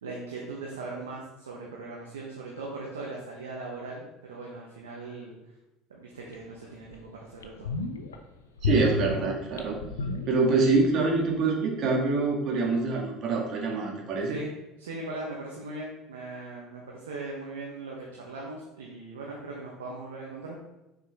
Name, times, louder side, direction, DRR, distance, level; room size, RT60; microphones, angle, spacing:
voice 1, 0.0-5.3 5.9-7.8 14.3-14.5 14.8-20.6, right 2 dB, 85° right, -2 dB, 1.0 m, -39 dB
sound 1, 6.3-6.4 6.9-7.0 7.4-8.2 8.6-10.8 11.1-11.2, left 3 dB, 85° left, 0.6 m, -31 dB
voice 2, 8.6-9.8 10.3-14.4, right 3 dB, 55° right, -1 dB, 2.0 m, -25 dB
6.3 x 5.0 x 3.5 m, 0.98 s
hypercardioid pair, 70°, 0 cm